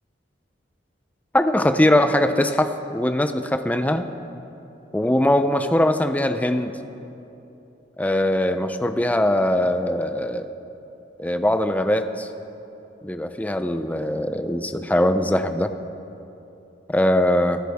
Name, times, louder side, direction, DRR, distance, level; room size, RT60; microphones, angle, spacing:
voice 1, 1.3-4.1 4.9-6.7 8.0-10.5 11.2-12.3 13.0-15.7 16.9-17.6, left 1 dB, 10° left, 9 dB, 0.5 m, -21 dB
24.0 x 10.5 x 3.5 m, 2.9 s
head